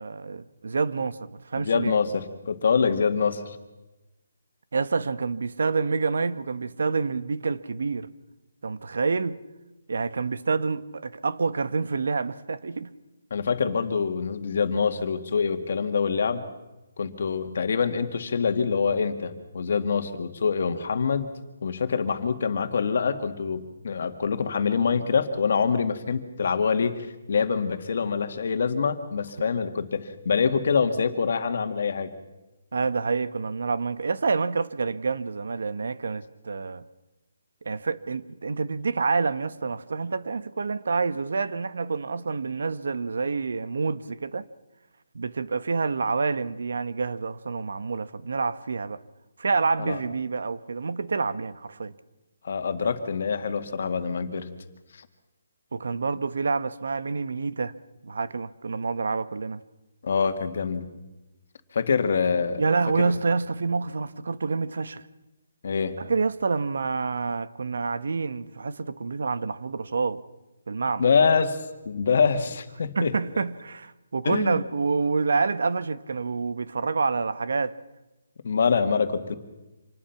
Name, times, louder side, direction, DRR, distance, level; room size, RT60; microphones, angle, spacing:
voice 1, 0.0-2.0 4.7-8.1 8.6-9.4 9.9-12.9 32.7-36.9 37.6-44.5 45.1-49.0 49.4-51.9 55.7-57.7 58.0-59.6 62.6-65.0 66.0-70.2 70.7-71.1 73.0-77.8, right 4 dB, 70° right, 1.0 m, -27 dB
voice 2, 1.6-3.6 13.3-16.5 17.0-21.3 21.6-32.1 49.8-50.0 52.4-54.5 54.9-55.1 60.0-60.9 61.7-62.6 63.0-63.1 65.6-66.0 71.0-71.6 71.8-73.1 74.2-74.6 78.4-79.3, left 5 dB, 50° left, 2.0 m, -25 dB
26.5 x 20.0 x 5.9 m
hypercardioid pair, 175°, 0 cm